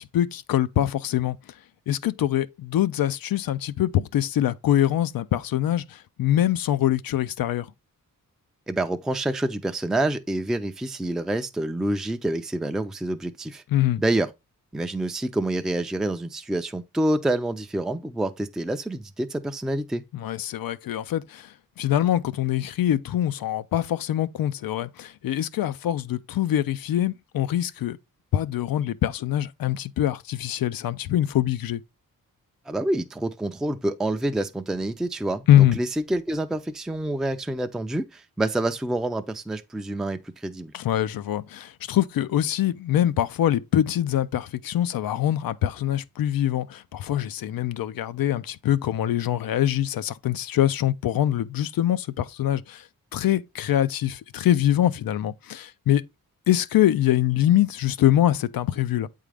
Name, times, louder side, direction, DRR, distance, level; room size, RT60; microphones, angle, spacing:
voice 1, 0.0-1.4 1.9-7.7 13.7-14.0 20.1-28.0 28.3-31.8 35.5-35.8 40.7-52.9 53.1-56.0 56.5-59.1, left 12 dB, 80° left, 0.5 m, -24 dB
voice 2, 8.7-13.6 14.0-14.3 14.7-20.0 32.7-40.7, right 1 dB, ahead, 0.4 m, -27 dB
8.2 x 3.7 x 3.3 m
wide cardioid pair, 100°, 35 cm